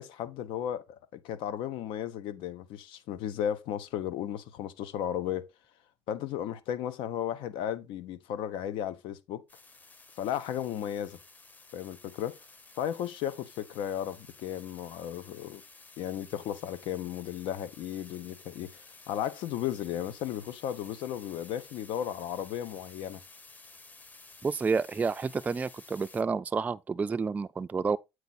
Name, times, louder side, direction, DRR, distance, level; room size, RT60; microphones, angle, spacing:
voice 1, 0.0-5.5 6.1-9.4 10.2-11.2 11.7-12.4 12.8-15.6 16.0-23.2, left 10 dB, 75° left, 1.1 m, -35 dB
sound 1, 9.5-26.2, left 3 dB, 20° left, 1.0 m, -54 dB
voice 2, 24.4-28.0, right 5 dB, 15° right, 0.4 m, -30 dB
8.1 x 4.7 x 4.2 m
cardioid pair, 130°, 9 cm